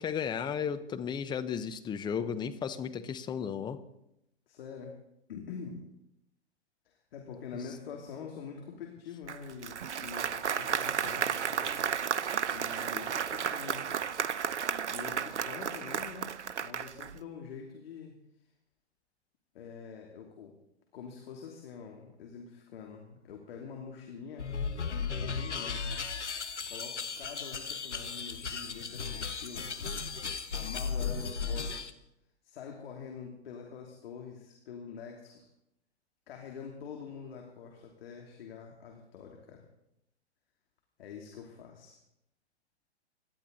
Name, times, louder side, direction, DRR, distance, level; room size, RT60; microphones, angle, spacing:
voice 1, 0.0-3.8, left 7 dB, 15° left, 9 dB, 0.7 m, -34 dB
voice 2, 4.5-4.9 5.3-5.8 6.8-11.8 12.5-14.0 14.9-18.1 19.5-20.5 20.9-24.5 24.9-25.9 26.7-29.7 30.5-32.0 32.4-35.4 36.3-39.6 41.0-41.9, left 6 dB, 60° left, 1 dB, 3.0 m, -45 dB
Applause, 9.3-17.2, right 7 dB, 85° right, 0.8 m, -33 dB
sound 1, 24.4-31.9, left 5 dB, 90° left, 1.3 m, -36 dB
26.5 x 12.0 x 4.1 m, 0.84 s
hypercardioid pair, 120°, 34 cm